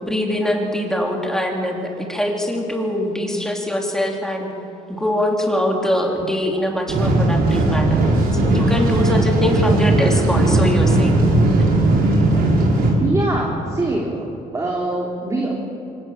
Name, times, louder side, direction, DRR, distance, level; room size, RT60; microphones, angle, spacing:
voice 1, 0.0-4.5 5.0-8.0 8.3-11.2, left 1 dB, 5° left, 0 dB, 4.1 m, -23 dB
sound 1, 6.9-12.9, right 2 dB, 65° right, 6.2 m, -17 dB
voice 2, 13.0-14.3 14.5-15.5, right 2 dB, 20° right, -2 dB, 3.3 m, -23 dB
25.0 x 19.5 x 7.6 m, 2.9 s
cardioid pair, 110°, 17 cm